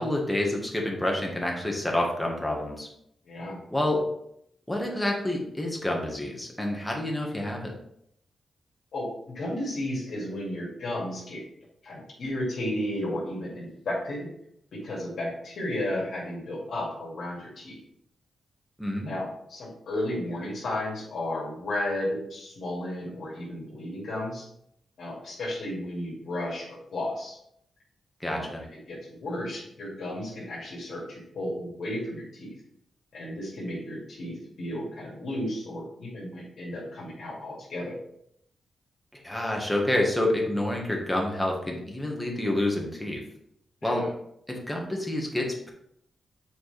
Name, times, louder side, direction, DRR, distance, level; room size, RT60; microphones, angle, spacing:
voice 1, 0.0-2.9 3.7-4.1 4.7-7.7 18.8-19.1 28.2-28.6 39.2-43.2 43.8-44.1 44.5-45.7, left 1 dB, 5° left, 0 dB, 1.5 m, -28 dB
voice 2, 3.3-3.6 8.9-11.4 11.8-14.3 14.7-17.8 19.1-24.5 25.0-27.4 28.3-28.5 28.9-32.5 33.1-37.9 43.8-44.1, left 1 dB, 65° left, -4 dB, 2.3 m, -33 dB
7.0 x 4.6 x 3.4 m, 0.73 s
cardioid pair, 100°, 0 cm